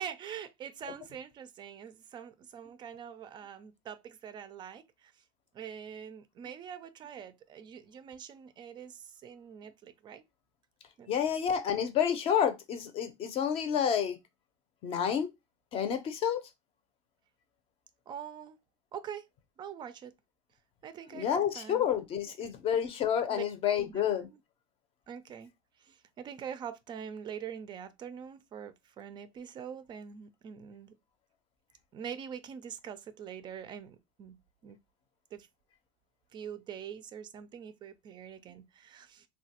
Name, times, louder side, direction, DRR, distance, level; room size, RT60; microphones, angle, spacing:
voice 1, 0.0-5.1 5.5-10.2 11.0-11.1 18.1-18.6 18.9-19.2 19.6-20.1 20.8-21.9 22.2-22.3 23.3-23.4 23.8-24.4 25.1-25.5 25.8-30.9 31.9-34.4 34.6-34.8 35.3-35.5 36.3-39.3, right 8 dB, 30° right, 0.4 m, -44 dB
voice 2, 11.1-14.2 14.8-15.3 15.7-16.4 21.1-24.3, left 8 dB, 40° left, 0.6 m, -29 dB
3.0 x 2.2 x 2.8 m
supercardioid pair, 120°, 15 cm